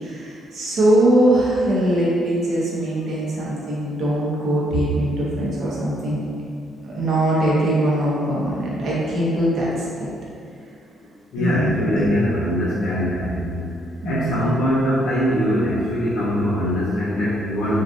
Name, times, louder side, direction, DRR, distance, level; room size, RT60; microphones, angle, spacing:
voice 1, 0.0-6.2 6.8-9.7 10.0-10.1 11.4-12.1 14.0-14.6, right 1 dB, 65° right, -6 dB, 0.7 m, -21 dB
voice 2, 11.3-13.7 14.0-17.8, equal, 85° left, -9 dB, 0.5 m, -22 dB
2.6 x 2.4 x 2.3 m, 2.4 s
cardioid pair, 90°, 0 cm